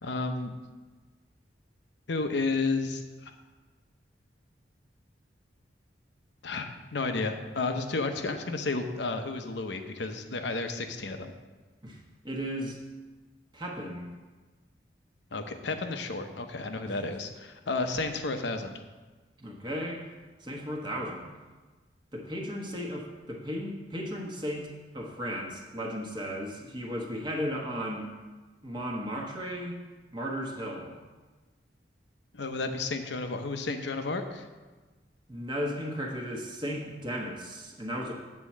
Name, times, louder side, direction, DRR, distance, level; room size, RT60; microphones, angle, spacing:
voice 1, 0.0-0.5 2.1-3.3 6.4-11.3 15.3-18.7 32.3-34.4, left 3 dB, 70° left, 7 dB, 0.8 m, -32 dB
voice 2, 12.2-12.8 13.5-14.1 16.8-16.9 19.4-20.0 20.4-21.3 22.1-28.1 28.6-29.8 30.1-31.0 35.3-38.1, equal, 25° right, -1 dB, 1.1 m, -35 dB
8.4 x 4.4 x 7.2 m, 1.3 s
head